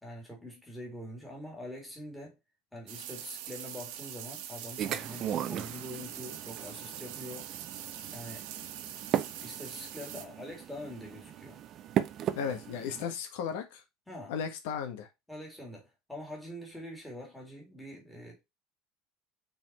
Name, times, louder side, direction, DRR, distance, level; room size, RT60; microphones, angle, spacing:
voice 1, 0.0-2.4 2.7-7.5 8.1-8.5 9.4-11.6 12.9-13.1 14.1-14.3 15.3-18.4, left 1 dB, 5° left, 2.3 m, -44 dB
sound 1, 2.9-10.2, right 10 dB, 70° right, 1.2 m, -43 dB
sound 2, 4.8-13.0, right 10 dB, 30° right, 0.5 m, -37 dB
voice 2, 12.3-13.8 14.3-15.1, left 7 dB, 85° left, 1.4 m, -35 dB
5.5 x 4.3 x 4.2 m
cardioid pair, 175°, 0 cm